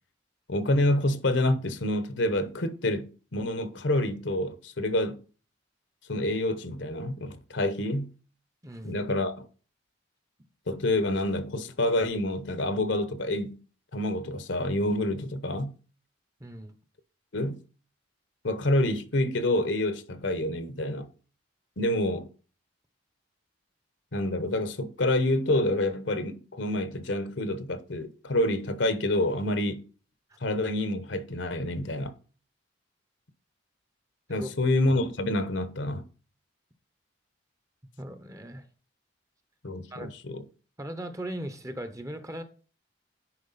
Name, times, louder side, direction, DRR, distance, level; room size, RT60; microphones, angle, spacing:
voice 1, 0.5-5.2 6.1-8.1 8.8-9.5 10.7-13.6 13.9-15.7 17.3-17.6 18.4-21.1 21.8-22.3 24.1-29.9 30.4-32.1 34.3-36.1 39.6-40.4, left 1 dB, 65° left, 1.0 m, -27 dB
voice 2, 8.6-9.0 16.4-16.7 34.4-34.5 38.0-38.7 39.9-40.1 40.8-42.4, right 1 dB, 15° right, 0.8 m, -38 dB
10.0 x 4.7 x 4.1 m
head